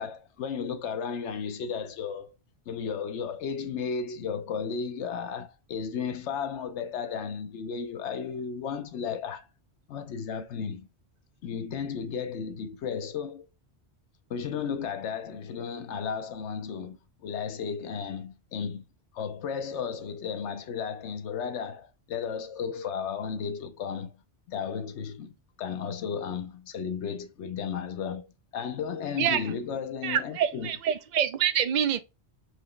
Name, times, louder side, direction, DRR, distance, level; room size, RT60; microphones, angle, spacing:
voice 1, 0.0-2.4 2.7-9.5 9.9-10.9 11.4-13.5 14.3-18.8 19.1-24.2 24.5-28.3 28.5-30.7, left 6 dB, 85° left, 1.0 m, -34 dB
voice 2, 30.0-32.0, right 9 dB, 55° right, 0.5 m, -26 dB
4.7 x 2.9 x 3.2 m
omnidirectional pair, 1.1 m